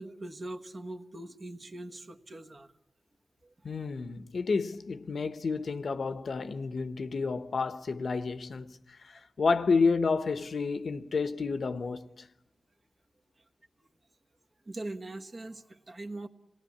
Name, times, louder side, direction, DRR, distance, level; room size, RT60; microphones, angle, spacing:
voice 1, 0.0-2.7 14.6-16.3, right 2 dB, 40° right, 1.4 m, -41 dB
voice 2, 3.6-8.8 9.4-12.3, left 4 dB, 75° left, 1.0 m, -30 dB
27.0 x 19.0 x 8.7 m
wide cardioid pair, 135°, 0 cm